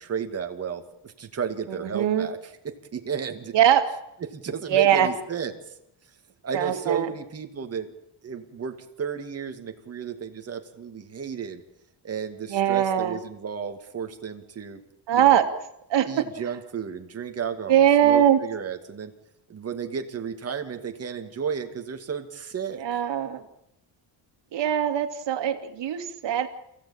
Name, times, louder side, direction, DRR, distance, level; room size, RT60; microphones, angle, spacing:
voice 1, 0.0-2.4 2.6-3.5 4.3-5.7 6.4-7.9 8.2-11.6 12.0-14.8 15.1-15.4 16.1-19.1 19.5-22.8, right 7 dB, 35° right, 5 dB, 2.4 m, -33 dB
voice 2, 1.7-2.3 3.5-3.9 4.7-5.1 6.5-7.1 12.5-13.2 15.1-15.5 15.9-16.2 17.7-18.4 22.8-23.4 24.5-26.5, right 10 dB, 65° right, 5 dB, 2.7 m, -21 dB
28.5 x 16.5 x 8.9 m, 0.83 s
cardioid pair, 170°, 45 cm